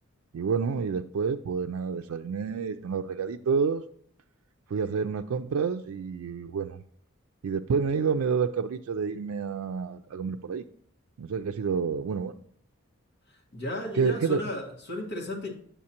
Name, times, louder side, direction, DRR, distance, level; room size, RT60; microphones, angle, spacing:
voice 1, 0.3-3.8 4.7-6.8 7.4-10.7 11.2-12.4 13.9-14.4, right 6 dB, 85° right, 0.4 m, -29 dB
voice 2, 13.5-15.5, left 2 dB, 55° left, 1.7 m, -34 dB
8.5 x 7.1 x 2.9 m
head